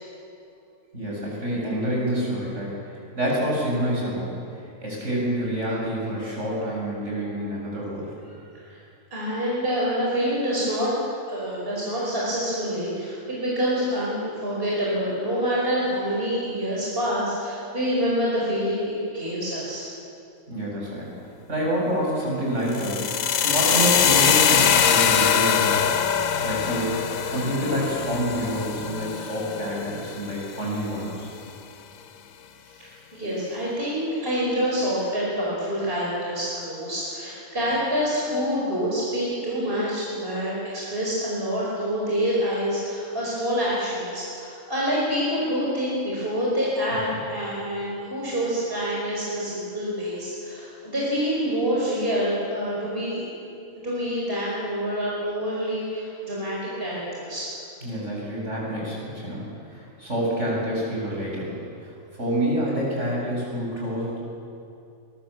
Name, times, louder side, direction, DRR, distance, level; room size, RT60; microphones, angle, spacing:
voice 1, 0.9-4.4 4.8-8.1 20.5-21.1 21.5-25.9 26.4-31.3 47.1-47.2 57.8-59.4 59.7-64.2, equal, 60° right, -4 dB, 7.8 m, -27 dB
voice 2, 8.3-8.8 9.1-10.9 11.3-19.9 32.8-53.2 53.8-57.5, equal, 45° right, -6 dB, 5.5 m, -27 dB
sound 1, 22.7-30.7, left 7 dB, 85° left, 1.4 m, -22 dB
23.5 x 22.0 x 7.3 m, 2.6 s
omnidirectional pair, 1.4 m